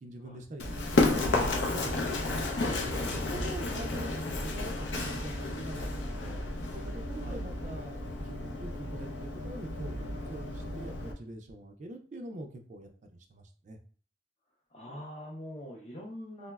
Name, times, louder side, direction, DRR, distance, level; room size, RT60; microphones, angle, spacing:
voice 1, 0.0-6.4 6.7-8.0 8.2-12.9 13.3-13.8, right 1 dB, 40° right, 5 dB, 0.3 m, -44 dB
Run, 0.6-11.1, left 2 dB, 90° left, 0.5 m, -32 dB
voice 2, 14.7-16.5, left 1 dB, 35° left, -4 dB, 0.5 m, -44 dB
3.8 x 2.0 x 2.2 m, 0.42 s
head